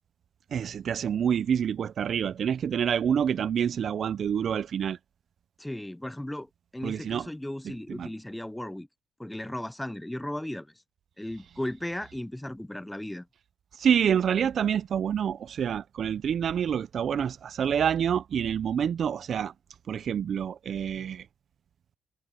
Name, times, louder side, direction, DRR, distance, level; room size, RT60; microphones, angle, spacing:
voice 1, 0.5-5.0 6.8-7.3 7.6-8.1 13.8-19.5 19.9-21.3, right 8 dB, 55° right, 0.5 m, -27 dB
voice 2, 5.6-8.9 9.2-10.7 11.2-13.3, left 1 dB, 5° left, 0.3 m, -36 dB
cardioid pair, 90°, 0 cm